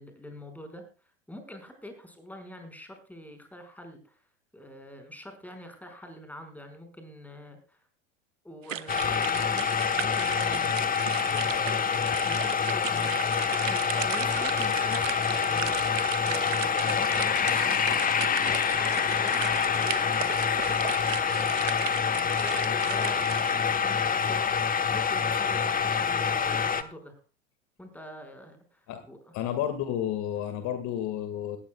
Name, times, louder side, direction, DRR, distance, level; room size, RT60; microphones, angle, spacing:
voice 1, 0.0-4.2 4.5-7.8 8.4-21.0 21.2-27.2 27.8-29.3, equal, 5° left, 6 dB, 5.4 m, -45 dB
sound 1, 8.6-23.5, right 10 dB, 85° right, 0.9 m, -37 dB
sound 2, 8.9-26.8, left 6 dB, 20° left, 1.2 m, -26 dB
voice 2, 29.3-31.6, left 10 dB, 50° left, 9 dB, 2.0 m, -31 dB
20.0 x 15.0 x 2.3 m, 0.35 s
hypercardioid pair, 85°, 37 cm